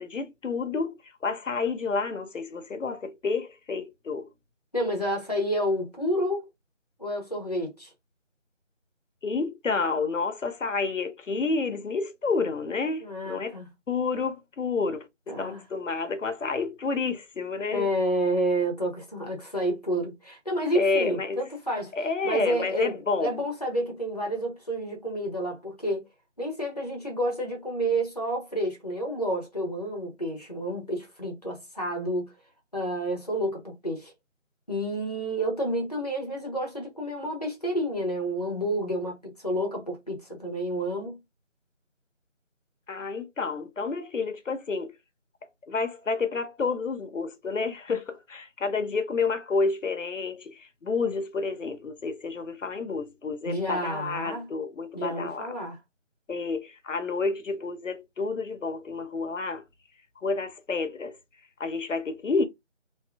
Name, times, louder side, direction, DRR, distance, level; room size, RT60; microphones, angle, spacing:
voice 1, 0.0-4.3 9.2-13.6 13.9-17.9 20.7-21.4 21.9-23.4 42.9-44.9 45.7-55.5 56.3-59.6 60.2-61.2 61.6-62.4, left 4 dB, 80° left, 0.7 m, -30 dB
voice 2, 4.7-6.5 7.0-7.9 13.0-13.7 15.3-15.6 17.7-21.9 22.2-26.1 26.4-32.3 32.7-34.1 34.7-41.2 53.5-54.5 54.9-55.8, right 1 dB, 30° left, 0.7 m, -29 dB
2.6 x 2.5 x 2.3 m
figure-of-eight pair, 175°, 37 cm